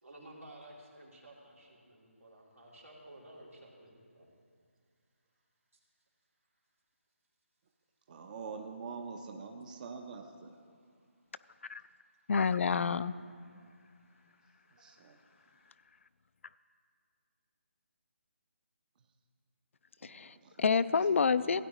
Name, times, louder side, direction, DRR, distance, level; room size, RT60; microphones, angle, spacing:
voice 1, 0.0-4.3 13.6-14.4 14.7-15.7, right 1 dB, 90° right, -3 dB, 2.8 m, -55 dB
voice 2, 8.1-10.6 14.8-15.2 20.0-20.9 21.4-21.6, right 5 dB, 35° right, 4 dB, 0.6 m, -45 dB
voice 3, 12.3-13.1 20.0-21.6, left 5 dB, 65° left, 15 dB, 0.3 m, -28 dB
16.0 x 9.3 x 3.0 m, 2.1 s
figure-of-eight pair, 155°, 7 cm